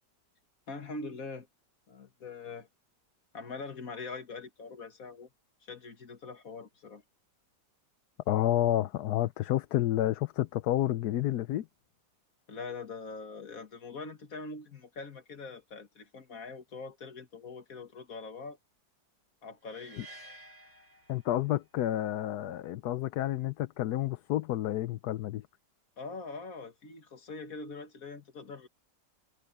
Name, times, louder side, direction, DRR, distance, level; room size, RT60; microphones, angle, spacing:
voice 1, 0.7-1.5 1.9-2.7 3.3-5.3 5.7-7.0 12.5-18.6 19.4-20.0 26.0-28.7, left 4 dB, 50° left, 2.2 m, -43 dB
voice 2, 8.3-11.6 21.1-25.5, left 13 dB, 70° left, 1.1 m, -30 dB
sound 1, 19.6-21.8, right 2 dB, 85° right, 8.6 m, -52 dB
omnidirectional pair, 1.9 m